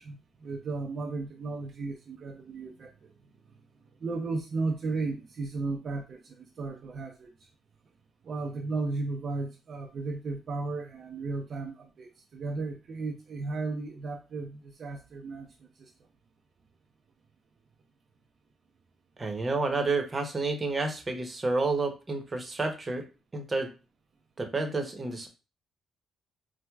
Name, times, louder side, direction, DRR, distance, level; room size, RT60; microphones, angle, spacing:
voice 1, 0.0-2.9 4.0-7.3 8.2-15.9, right 3 dB, 55° right, 2 dB, 0.4 m, -35 dB
voice 2, 19.2-23.0 23.3-23.7 24.4-25.3, right 3 dB, 25° right, 4 dB, 0.8 m, -30 dB
4.5 x 2.1 x 2.3 m, 0.31 s
cardioid pair, 90°, 0 cm